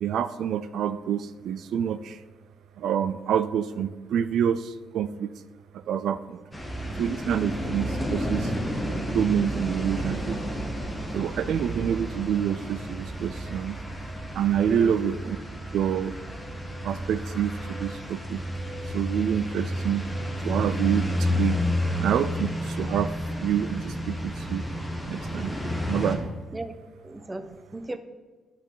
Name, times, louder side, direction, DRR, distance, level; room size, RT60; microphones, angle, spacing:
voice 1, 0.0-2.2 2.8-5.3 5.7-6.4 7.0-8.5 9.1-10.4 11.1-13.8 14.3-15.4 15.7-16.2 16.8-18.4 18.9-20.1 20.4-21.6 22.0-23.1 23.4-24.7 25.1-25.6 25.9-26.3, right 9 dB, 70° right, 13 dB, 0.3 m, -27 dB
sound 1, 6.5-26.2, equal, 5° left, 1.3 m, -31 dB
voice 2, 14.7-15.0 26.5-26.7 27.0-28.0, right 1 dB, 15° right, 10 dB, 0.6 m, -37 dB
11.0 x 6.8 x 3.9 m, 1.3 s
cardioid pair, 145°, 0 cm